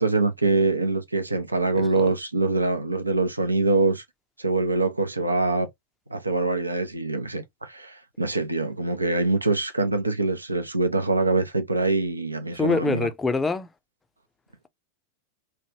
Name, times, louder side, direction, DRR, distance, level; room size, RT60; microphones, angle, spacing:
voice 1, 0.0-4.0 4.4-5.7 6.1-13.1, right 3 dB, 80° right, 0.6 m, -24 dB
voice 2, 1.7-2.1 12.6-13.7, left 3 dB, 15° left, 0.5 m, -25 dB
3.3 x 2.3 x 2.8 m
figure-of-eight pair, 90°, 0 cm